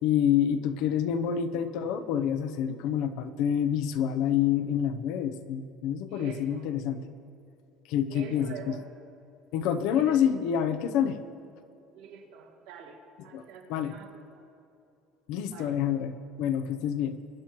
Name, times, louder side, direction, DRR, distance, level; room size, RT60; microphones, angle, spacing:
voice 1, 0.0-7.0 7.9-8.8 9.5-11.2 13.3-13.4 13.7-13.9 15.3-17.2, left 9 dB, 60° left, 10 dB, 0.7 m, -27 dB
voice 2, 6.1-6.6 8.1-8.9 9.9-10.3 11.9-13.0 13.2-14.4 15.5-15.8, right 6 dB, 75° right, 1 dB, 1.9 m, -45 dB
22.0 x 10.5 x 3.0 m, 2.7 s
cardioid pair, 180°, 0 cm